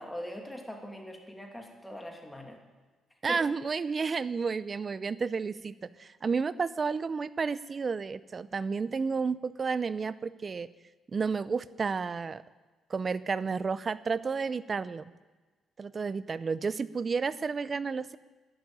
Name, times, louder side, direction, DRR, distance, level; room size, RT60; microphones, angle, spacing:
voice 1, 0.0-2.6 3.3-3.4, equal, 10° left, 2 dB, 2.8 m, -41 dB
voice 2, 3.2-10.7 11.1-12.4 12.9-15.1 15.8-18.2, right 5 dB, 40° right, 17 dB, 0.6 m, -31 dB
12.0 x 11.5 x 9.1 m, 1.3 s
cardioid pair, 90°, 0 cm